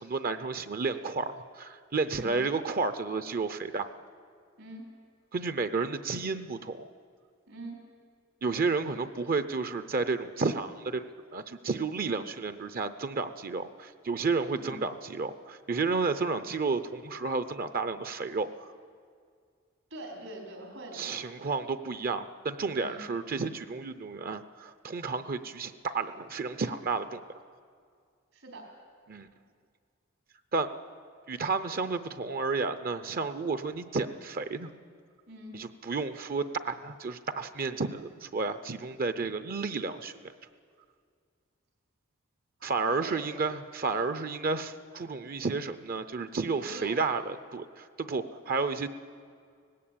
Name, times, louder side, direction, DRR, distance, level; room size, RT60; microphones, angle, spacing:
voice 1, 0.0-3.9 5.3-6.9 8.4-18.7 20.9-27.2 29.1-29.3 30.5-30.7 31.3-34.7 35.5-40.1 42.6-48.9, right 4 dB, 45° right, 11 dB, 0.7 m, -31 dB
voice 2, 2.1-2.4 4.6-4.9 7.5-7.8 14.5-14.7 19.9-21.1 22.8-23.0 28.3-28.6 35.3-35.6 42.8-43.2 46.6-47.0, right 1 dB, 80° right, 1 dB, 4.8 m, -44 dB
18.5 x 16.5 x 8.7 m, 2.2 s
head